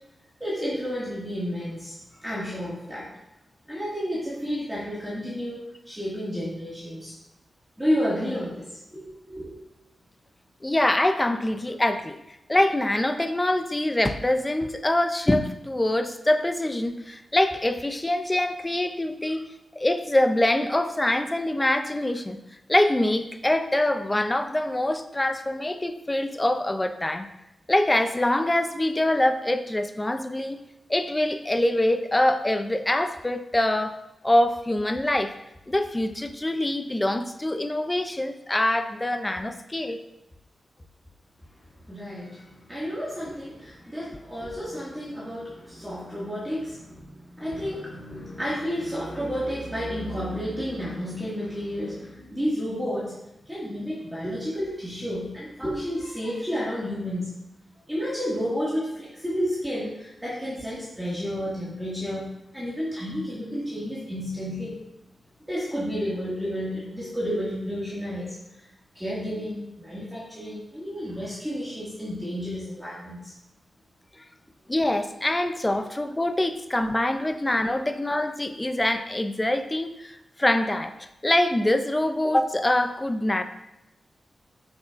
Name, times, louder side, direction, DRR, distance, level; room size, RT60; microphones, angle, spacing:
voice 1, 0.4-3.1 3.7-7.1 7.8-9.5 41.9-53.1 53.5-57.3 57.9-64.8 65.5-68.7 68.9-73.3, equal, 10° right, -9 dB, 2.0 m, -31 dB
voice 2, 10.6-12.2 12.5-19.5 19.7-22.4 22.7-27.3 27.7-30.6 30.9-34.0 34.2-35.3 35.7-40.0 74.7-83.4, left 1 dB, 15° left, 8 dB, 0.4 m, -24 dB
7.8 x 6.1 x 2.5 m, 0.91 s
wide cardioid pair, 120°, 0 cm